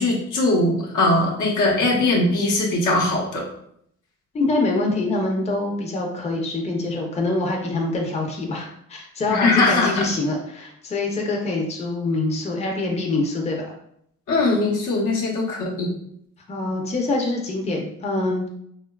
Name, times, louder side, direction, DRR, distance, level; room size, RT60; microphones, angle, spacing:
voice 1, 0.0-3.4 9.3-10.1 14.3-15.9, left 2 dB, 75° left, -3 dB, 0.8 m, -20 dB
voice 2, 4.3-13.7 16.5-18.4, left 2 dB, 20° left, 0 dB, 0.5 m, -25 dB
2.9 x 2.2 x 2.2 m, 0.71 s
cardioid pair, 90°, 30 cm